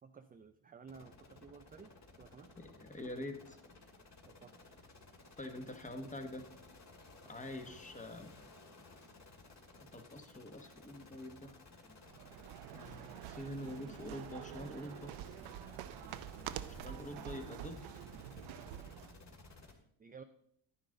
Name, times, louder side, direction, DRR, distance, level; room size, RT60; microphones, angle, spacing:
voice 1, 0.0-1.9 2.2-2.5 4.3-4.7 20.0-20.2, right 5 dB, 20° right, 7 dB, 0.4 m, -54 dB
sound 1, 0.8-19.7, left 3 dB, 35° left, 2.2 m, -57 dB
voice 2, 2.6-3.6 5.4-6.5 7.2-8.4 9.8-11.5 11.9-12.0 12.7-15.1 16.7-18.0, left 1 dB, 15° left, 6 dB, 1.3 m, -46 dB
sound 2, 12.0-19.2, right 12 dB, 75° right, 0.7 m, -47 dB
11.0 x 10.0 x 3.9 m, 0.71 s
cardioid pair, 120°, 47 cm